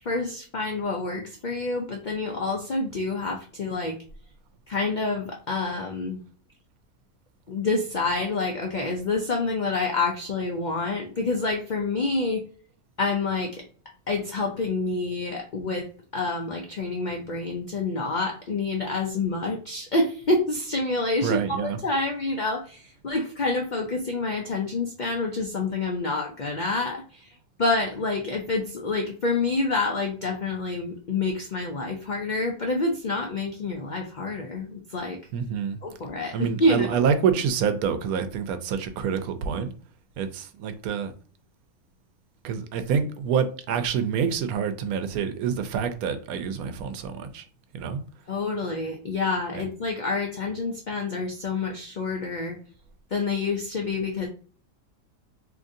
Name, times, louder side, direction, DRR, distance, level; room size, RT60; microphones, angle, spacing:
voice 1, 0.0-4.0 4.7-6.2 7.5-12.4 13.0-13.6 14.1-27.3 27.6-35.2 35.8-37.0 48.3-52.6 53.1-54.3, left 3 dB, 85° left, 0.4 m, -27 dB
voice 2, 21.2-21.8 35.3-35.8 36.3-39.7 40.2-41.1 42.4-47.4 47.7-48.0 49.5-49.7, right 7 dB, 85° right, 1.0 m, -27 dB
3.7 x 2.8 x 2.6 m
omnidirectional pair, 1.5 m